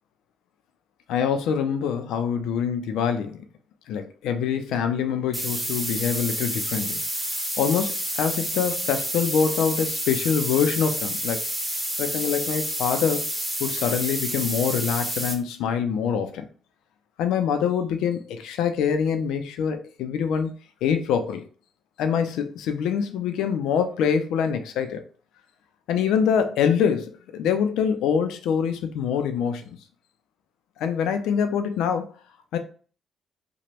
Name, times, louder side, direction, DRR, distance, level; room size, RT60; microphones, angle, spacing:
voice 1, 1.1-3.4 3.9-7.0 7.6-11.4 12.0-13.3 13.6-16.5 17.2-20.5 20.8-21.4 22.0-25.0 25.9-29.8 30.8-32.1 32.5-32.6, left 7 dB, 90° left, 8 dB, 0.4 m, -25 dB
sound 1, 5.3-15.3, equal, 5° right, 1.1 m, -29 dB
3.0 x 2.2 x 2.8 m, 0.40 s
cardioid pair, 90°, 0 cm